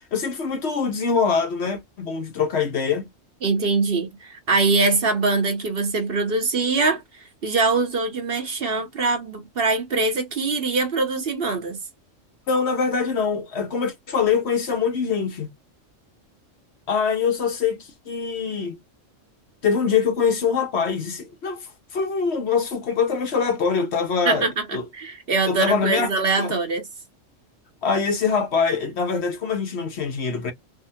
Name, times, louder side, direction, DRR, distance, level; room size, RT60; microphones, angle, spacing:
voice 1, 0.1-3.1 12.5-15.5 16.9-18.8 19.6-24.8 25.5-26.1 26.4-26.5 27.8-30.5, left 5 dB, 60° left, 1.1 m, -24 dB
voice 2, 3.4-11.8 24.2-26.9, right 3 dB, 50° right, 1.0 m, -23 dB
3.5 x 2.1 x 2.6 m
omnidirectional pair, 1.3 m